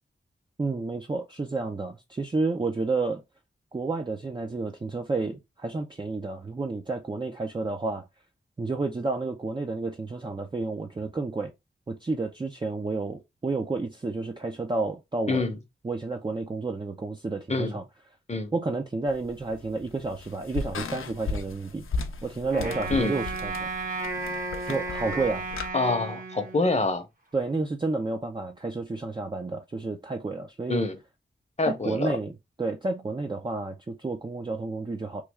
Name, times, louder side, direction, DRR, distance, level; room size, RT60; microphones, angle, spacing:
voice 1, 0.6-3.2 3.7-8.1 8.6-11.5 11.9-15.4 15.8-17.8 18.5-21.9 22.2-23.7 24.7-25.4 27.3-30.9 31.7-32.3 32.6-35.2, right 3 dB, 25° right, 0.4 m, -30 dB
voice 2, 15.3-15.6 17.5-17.7 18.3-18.5 22.9-23.2 25.7-27.1 30.7-31.0 31.6-32.2, left 3 dB, 35° left, 0.8 m, -26 dB
sound 1, 19.1-25.7, left 4 dB, 90° left, 0.5 m, -36 dB
Wind instrument woodwind instrument, 22.5-26.9, right 3 dB, 40° right, 0.9 m, -34 dB
3.1 x 2.3 x 3.4 m
wide cardioid pair, 70°, 20 cm